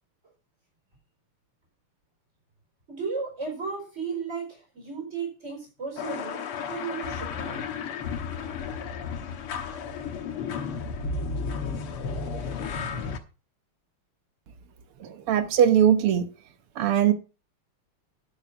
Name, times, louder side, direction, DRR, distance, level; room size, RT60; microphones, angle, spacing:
voice 1, 2.9-7.6, right 5 dB, 30° right, 0 dB, 5.0 m, -35 dB
sound 1, 6.0-13.2, left 5 dB, 80° left, 2.2 m, -33 dB
voice 2, 15.0-16.3 16.8-17.1, right 9 dB, 80° right, 10 dB, 2.1 m, -20 dB
10.5 x 9.1 x 4.9 m, 0.32 s
omnidirectional pair, 2.4 m